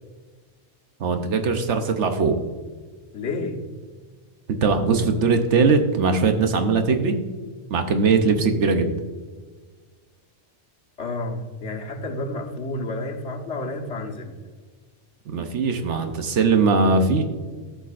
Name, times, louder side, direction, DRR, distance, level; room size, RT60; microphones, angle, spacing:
voice 1, 1.0-2.3 4.6-7.3 7.7-9.0 15.3-17.2, right 4 dB, 80° right, 6 dB, 1.1 m, -20 dB
voice 2, 3.1-3.6 11.0-14.4, left 2 dB, 75° left, 1 dB, 1.5 m, -30 dB
13.5 x 6.6 x 2.5 m, 1.4 s
omnidirectional pair, 1.2 m